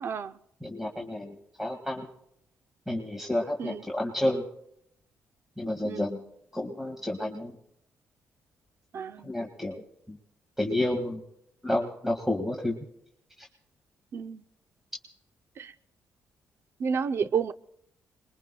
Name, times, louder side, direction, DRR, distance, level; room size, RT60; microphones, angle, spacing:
voice 1, 0.0-0.3 3.6-3.8 5.8-6.1 8.9-9.3 14.1-14.4 15.6-15.7 16.8-17.5, right 6 dB, 55° right, 0.6 m, -30 dB
voice 2, 0.6-2.1 2.9-4.4 5.6-6.2 6.5-7.5 9.2-9.8 10.1-10.2 10.6-11.2 11.6-12.8, left 1 dB, 5° right, 1.9 m, -30 dB
28.0 x 22.0 x 2.3 m
cardioid pair, 80°, 5 cm